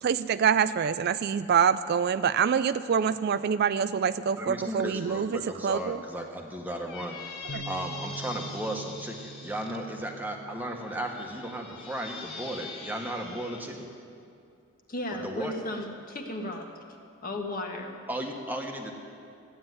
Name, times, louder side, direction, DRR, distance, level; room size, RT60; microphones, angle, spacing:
voice 1, 0.0-6.0 7.5-7.6, right 7 dB, 50° right, 14 dB, 0.3 m, -26 dB
voice 2, 4.4-7.2 7.7-13.9 15.1-15.5 18.1-18.9, right 1 dB, 10° right, 2 dB, 1.4 m, -35 dB
Squeak, 6.7-9.8 10.6-13.7, left 4 dB, 25° left, 2.4 m, -43 dB
Bass guitar, 7.5-13.7, right 3 dB, 90° left, 1.2 m, -46 dB
voice 3, 14.9-16.6 17.2-17.9, left 1 dB, 40° left, 2 dB, 1.6 m, -34 dB
14.5 x 9.6 x 9.6 m, 2.4 s
head